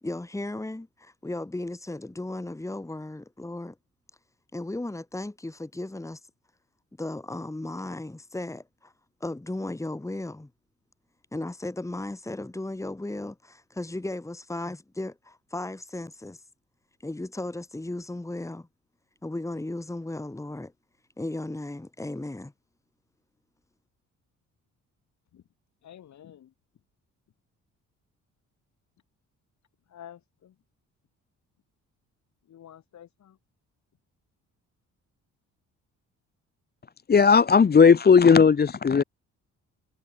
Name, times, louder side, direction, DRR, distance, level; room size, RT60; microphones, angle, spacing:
voice 1, 0.0-3.8 4.5-6.2 7.0-8.9 9.2-10.5 11.3-16.4 17.0-18.7 19.2-20.7 21.2-22.5, left 2 dB, 10° left, 2.8 m, -35 dB
voice 2, 25.8-26.5 29.9-30.5 32.5-33.4, left 10 dB, 65° left, 7.7 m, -49 dB
voice 3, 37.1-39.0, left 6 dB, 30° left, 1.2 m, -16 dB
cardioid pair, 90°, 30 cm